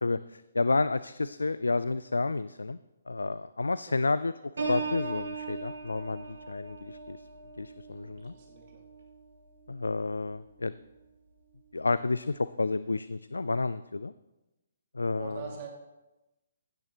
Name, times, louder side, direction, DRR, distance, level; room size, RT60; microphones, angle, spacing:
voice 1, 0.0-2.8 3.1-4.3 4.7-7.2 7.6-8.3 9.7-10.7 11.7-14.1 14.9-15.4, left 3 dB, 80° left, 15 dB, 0.4 m, -30 dB
Piano, 4.6-10.2 10.7-11.0, right 4 dB, 75° right, 5.5 m, -39 dB
voice 2, 7.9-8.8 15.1-15.7, right 8 dB, 40° right, 0 dB, 2.4 m, -45 dB
16.5 x 12.5 x 3.0 m, 1.0 s
figure-of-eight pair, 135°, 0 cm